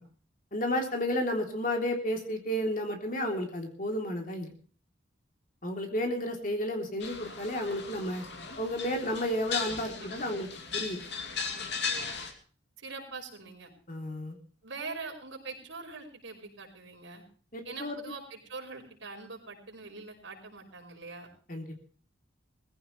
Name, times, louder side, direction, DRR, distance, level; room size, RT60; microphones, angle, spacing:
voice 1, 0.5-4.5 5.6-8.2 8.6-10.5 10.7-11.0 13.9-14.4 17.5-18.1 21.5-21.8, left 1 dB, 40° left, 3 dB, 3.4 m, -32 dB
sound 1, 7.0-12.3, left 5 dB, 60° left, 2.8 m, -37 dB
voice 2, 9.8-10.4 12.8-13.7 14.6-17.2 17.6-21.3, right 4 dB, 80° right, 1 dB, 5.4 m, -43 dB
20.5 x 15.5 x 3.3 m, 0.43 s
head